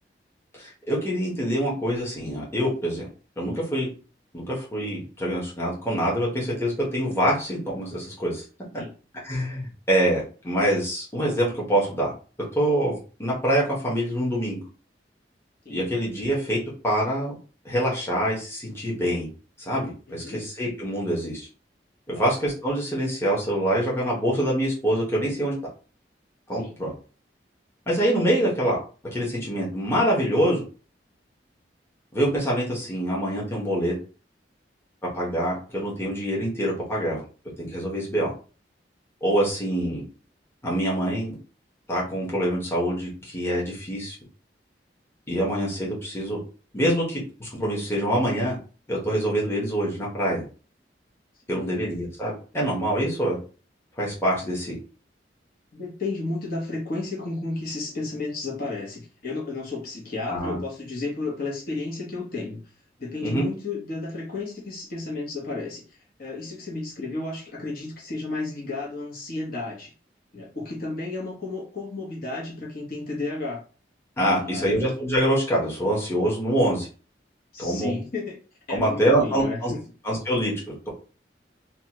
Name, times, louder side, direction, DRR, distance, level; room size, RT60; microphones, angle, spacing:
voice 1, 0.5-3.1 3.4-3.9 4.3-8.4 9.2-12.1 12.5-14.6 15.7-16.6 16.8-17.4 17.6-19.3 19.6-21.5 22.1-25.5 26.5-26.9 27.9-28.8 29.1-30.6 32.1-33.9 35.2-37.2 37.6-38.3 39.2-40.0 40.6-41.3 41.9-44.1 45.3-46.4 46.7-48.6 48.9-50.4 51.5-53.4 54.0-54.8 60.3-60.6 63.2-63.4 74.2-76.9 77.6-77.9 78.7-79.7 80.0-80.9, right 1 dB, 15° left, -6 dB, 1.0 m, -25 dB
voice 2, 20.1-20.4 22.1-22.3 26.5-26.8 39.4-39.5 51.5-51.7 55.7-62.6 63.0-65.8 66.2-69.9 70.3-73.6 74.2-74.7 77.5-78.4 78.7-79.8, left 3 dB, 55° left, -3 dB, 1.0 m, -32 dB
2.8 x 2.3 x 2.9 m, 0.37 s
head